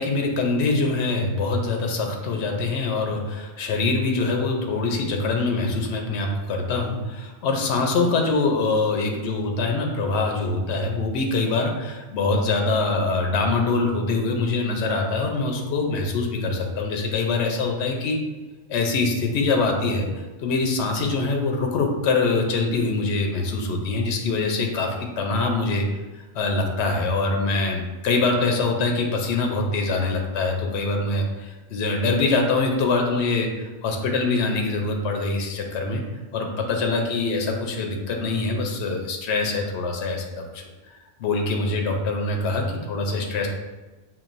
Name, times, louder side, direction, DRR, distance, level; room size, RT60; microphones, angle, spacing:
voice 1, 0.0-18.2 18.7-20.1 20.4-25.8 26.3-36.0 36.3-40.6 41.2-43.5, left 3 dB, 75° left, 3 dB, 0.9 m, -24 dB
5.6 x 2.5 x 2.5 m, 1.2 s
omnidirectional pair, 1.1 m